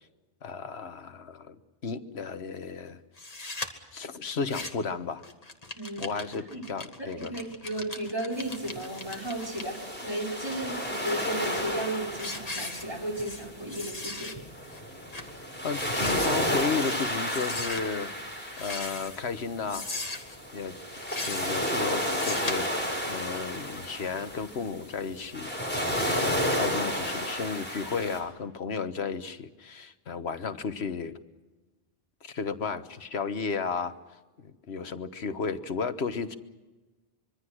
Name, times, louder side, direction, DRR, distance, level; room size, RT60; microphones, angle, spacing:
voice 1, 0.4-3.0 3.9-5.2 6.0-7.3 15.6-18.1 18.6-19.9 20.5-20.8 21.3-25.5 26.1-31.2 32.2-34.0 34.4-36.4, left 5 dB, 80° left, 10 dB, 1.5 m, -33 dB
sound 1, 3.2-3.7 4.3-4.9 5.2-9.6 10.2-11.3 11.8-11.9 12.2-13.4 13.7-14.3 14.7-14.8 15.1-15.3 15.7-16.6 17.3-17.8 18.5-19.2 19.7-20.4 20.9-21.6 22.0-22.5, left 2 dB, 40° left, 2.0 m, -38 dB
voice 2, 7.2-14.3, right 1 dB, 25° right, -2 dB, 5.4 m, -34 dB
sound 2, 8.3-28.2, equal, 10° left, 5.0 m, -32 dB
25.5 x 23.5 x 6.3 m, 1.2 s
omnidirectional pair, 1.1 m